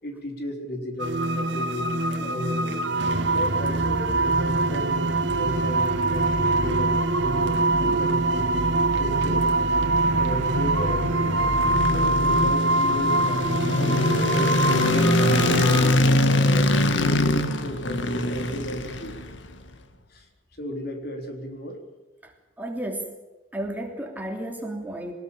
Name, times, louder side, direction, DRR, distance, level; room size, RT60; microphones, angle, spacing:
voice 1, 0.0-2.8 3.3-8.5 9.0-9.5 9.9-11.4 11.9-15.8 16.3-19.2 20.1-20.3 20.6-21.8, left 1 dB, 55° left, 4 dB, 4.0 m, -34 dB
sound 1, 1.0-15.9, right 2 dB, 70° right, 2.2 m, -24 dB
sound 2, 3.6-13.8, equal, 40° right, 4.1 m, -33 dB
sound 3, 11.1-19.5, left 1 dB, 70° left, 1.8 m, -23 dB
voice 2, 22.6-23.1 23.5-25.1, right 1 dB, 10° right, 2 dB, 3.1 m, -32 dB
23.0 x 19.5 x 7.3 m, 1.2 s
head